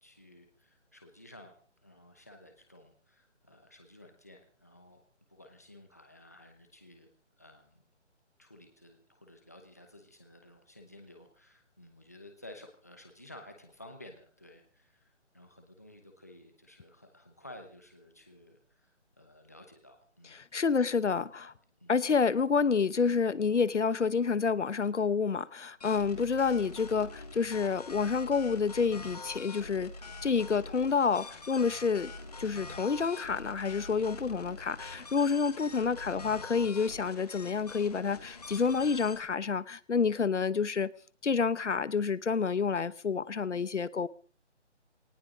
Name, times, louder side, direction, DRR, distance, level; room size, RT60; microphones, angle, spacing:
voice 1, 0.0-5.0 5.3-7.1 7.4-7.8 8.4-20.4 20.7-21.5 21.8-21.9 26.1-26.3, left 1 dB, 15° left, 1.0 m, -54 dB
voice 2, 20.5-21.5 21.9-29.9 30.2-32.1 32.4-40.9 41.2-44.1, left 5 dB, 75° left, 1.1 m, -29 dB
sound 1, 25.8-39.2, left 3 dB, 35° left, 1.8 m, -45 dB
19.0 x 18.5 x 3.8 m
hypercardioid pair, 180°, 36 cm